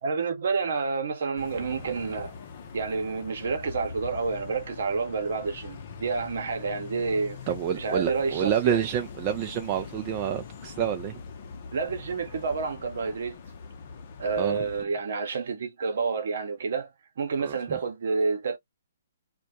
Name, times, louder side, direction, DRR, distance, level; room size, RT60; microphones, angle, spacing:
voice 1, 0.0-2.3 2.7-7.4 7.7-8.8 11.7-13.4 14.2-18.6, right 4 dB, 65° right, 0.8 m, -29 dB
sound 1, 1.4-14.8, left 5 dB, 50° left, 0.6 m, -42 dB
voice 2, 7.5-11.2 14.4-14.6 17.4-17.5, right 9 dB, 35° right, 0.4 m, -28 dB
2.2 x 2.1 x 2.7 m
hypercardioid pair, 135°, 0 cm